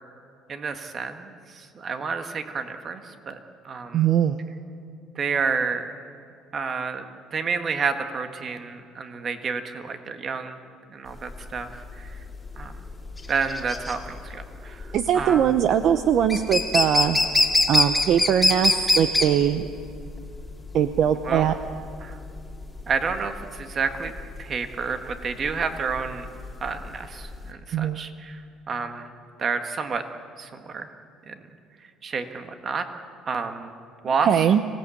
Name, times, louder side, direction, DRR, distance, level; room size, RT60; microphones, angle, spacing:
voice 1, 0.5-3.4 3.7-4.0 5.2-5.9 6.5-7.1 7.3-10.6 10.9-11.7 12.0-12.1 12.6-12.7 13.3-14.9 15.1-15.4 21.3-21.5 22.0-22.2 22.9-24.1 24.4-26.3 26.6-28.4 28.7-29.1 29.4-30.0 30.4-30.9 31.3-31.4 32.0-32.9 33.3-33.7 34.0-34.3, right 5 dB, 35° right, 7 dB, 1.6 m, -29 dB
voice 2, 3.9-4.4 14.9-17.2 17.7-19.7 20.7-21.5 27.7-28.0 34.0-34.6, right 9 dB, 50° right, 10 dB, 0.8 m, -21 dB
sound 1, 11.1-27.5, left 2 dB, 5° left, 2.6 m, -25 dB
25.5 x 17.5 x 8.5 m, 2.5 s
cardioid pair, 140°, 0 cm